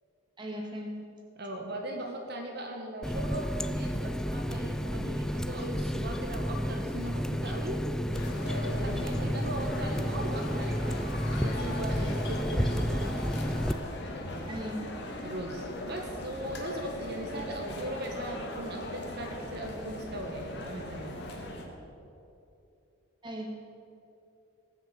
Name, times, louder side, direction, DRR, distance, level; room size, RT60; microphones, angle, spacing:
voice 1, 0.4-0.9 14.5-14.9 23.2-23.5, equal, 25° right, 0 dB, 2.1 m, -37 dB
voice 2, 1.4-7.8 8.4-13.1 15.2-21.1, right 1 dB, 55° right, 1 dB, 1.7 m, -38 dB
Water tap faucet, 3.0-13.7, equal, 5° left, 0.4 m, -31 dB
sound 1, 8.1-21.6, left 1 dB, 55° left, 2.4 m, -39 dB
19.5 x 7.2 x 8.4 m, 2.7 s
head